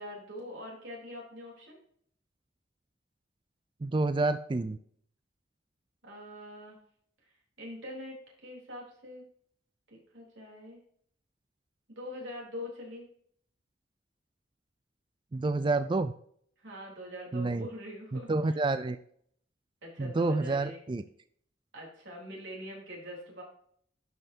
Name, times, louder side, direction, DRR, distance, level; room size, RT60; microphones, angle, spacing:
voice 1, 0.0-1.8 6.0-6.8 7.6-9.2 9.9-10.8 11.9-13.1 16.6-18.6 19.8-20.8 21.7-23.4, left 1 dB, 90° right, -2 dB, 3.7 m, -43 dB
voice 2, 3.8-4.8 15.3-16.1 17.3-17.7 18.1-19.0 20.0-21.0, right 3 dB, 25° right, 11 dB, 0.4 m, -29 dB
12.0 x 5.5 x 2.8 m, 0.63 s
head